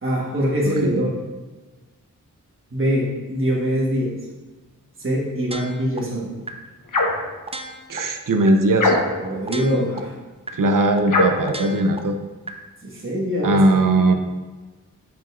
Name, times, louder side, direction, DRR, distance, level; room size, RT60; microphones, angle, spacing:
voice 1, 0.0-1.2 2.7-4.2 5.0-6.4 9.2-10.1 12.8-13.6 14.0-14.1, equal, 40° right, -5 dB, 1.4 m, -23 dB
voice 2, 0.7-1.0 7.9-9.0 10.5-12.1 13.4-14.1, right 2 dB, 75° right, 6 dB, 0.6 m, -19 dB
sound 1, 5.5-6.0 6.5-6.6 7.0-7.1 7.5-8.0 8.5-8.6 9.0-9.1 9.5-10.0 10.5-10.6 11.0-11.1 11.5-12.0 12.5-12.6, right 2 dB, 20° right, 0.5 m, -33 dB
sound 2, 6.9-7.3 8.8-9.3 11.1-11.5, left 2 dB, 70° left, 0.9 m, -20 dB
7.6 x 5.2 x 2.4 m, 1.2 s
wide cardioid pair, 65°, 33 cm